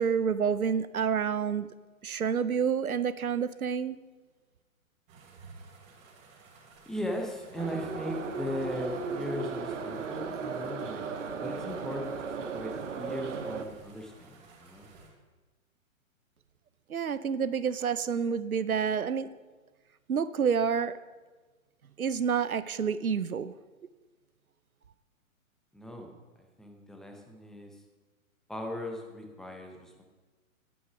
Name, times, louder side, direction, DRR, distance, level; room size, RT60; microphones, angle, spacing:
voice 1, 0.0-1.7 2.0-4.0 16.9-19.3 20.1-20.9 22.0-23.5, right 6 dB, 90° right, 15 dB, 0.6 m, -28 dB
sound 1, 5.1-15.1, right 4 dB, 25° right, 2.6 m, -54 dB
voice 2, 6.9-11.0 11.4-14.9 25.7-26.1 26.6-27.8 28.5-30.0, left 1 dB, ahead, 2 dB, 0.6 m, -38 dB
Subway metro underground, 7.6-13.6, right 5 dB, 60° right, 1.2 m, -36 dB
10.0 x 8.6 x 5.9 m, 1.3 s
figure-of-eight pair, 120°, 42 cm